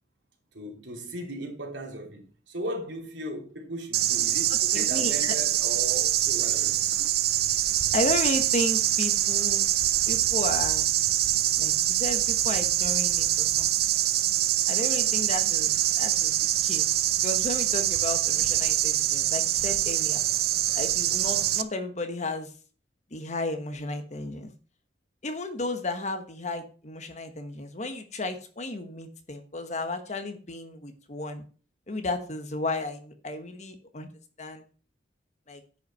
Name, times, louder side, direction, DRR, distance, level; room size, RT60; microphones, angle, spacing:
voice 1, 0.5-6.8, right 1 dB, 90° right, 3.1 m, -37 dB
sound 1, 3.9-21.6, right 13 dB, 60° right, 0.6 m, -24 dB
voice 2, 4.7-5.3 7.9-9.7 10.1-10.9 11.6-13.7 14.7-16.3 16.6-20.2 20.7-22.5 23.1-24.5 25.2-31.4 31.9-34.1 34.4-34.6 35.5-35.6, left 2 dB, 40° left, 1.2 m, -33 dB
10.0 x 5.6 x 5.5 m
head